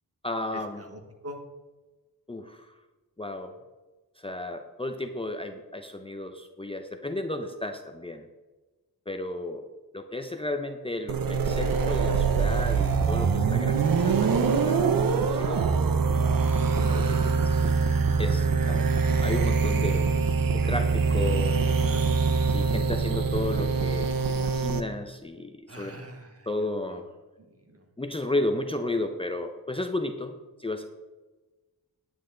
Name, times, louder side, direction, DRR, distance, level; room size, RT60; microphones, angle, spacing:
voice 1, 0.2-0.8 2.3-2.7 3.2-3.6 4.2-8.2 9.1-9.7 9.9-14.3 14.6-14.9 15.3-15.6 16.7-17.8 18.2-20.1 20.5-21.7 22.5-26.0 26.5-27.1 28.0-30.8, left 2 dB, 15° left, 5 dB, 0.6 m, -33 dB
voice 2, 0.8-1.4 21.7-22.0 25.7-26.5 27.7-27.8, equal, 40° right, 3 dB, 1.6 m, -43 dB
sound 1, 11.1-24.8, right 5 dB, 65° right, 0.8 m, -24 dB
9.6 x 8.9 x 3.9 m, 1.2 s
wide cardioid pair, 105°, 36 cm